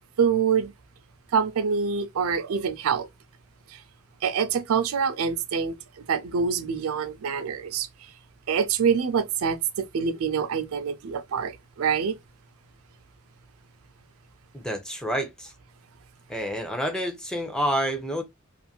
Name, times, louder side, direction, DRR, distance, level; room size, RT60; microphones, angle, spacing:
voice 1, 0.2-0.7 1.3-3.1 3.7-3.8 4.2-7.9 8.5-12.2, right 6 dB, 85° right, 0.4 m, -25 dB
voice 2, 14.5-15.5 16.3-18.2, equal, 5° left, 0.5 m, -28 dB
2.5 x 2.5 x 2.8 m
head